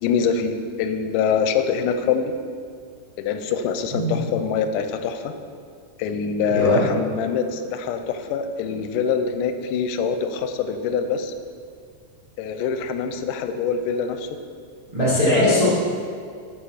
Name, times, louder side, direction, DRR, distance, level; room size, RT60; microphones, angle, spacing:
voice 1, 0.0-2.3 3.2-5.3 6.0-11.3 12.4-14.3 15.3-15.7, left 6 dB, 90° left, 7 dB, 2.1 m, -24 dB
voice 2, 6.5-6.8 14.9-15.7, equal, 65° right, -9 dB, 0.3 m, -20 dB
6.4 x 4.9 x 5.7 m, 2.2 s
omnidirectional pair, 3.7 m